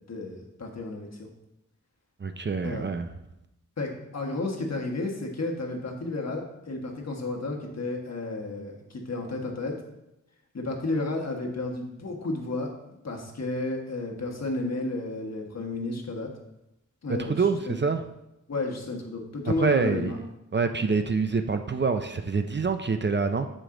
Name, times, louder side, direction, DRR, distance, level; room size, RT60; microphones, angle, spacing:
voice 1, 0.1-1.3 2.6-2.8 3.8-9.8 10.5-12.7 13.0-16.3 17.0-17.8 18.5-20.2, left 2 dB, 55° left, 1 dB, 1.3 m, -32 dB
voice 2, 2.2-3.1 17.2-18.0 19.6-20.1 20.5-23.5, right 4 dB, 35° right, 8 dB, 0.4 m, -26 dB
7.4 x 5.1 x 3.7 m, 0.88 s
wide cardioid pair, 90°, 31 cm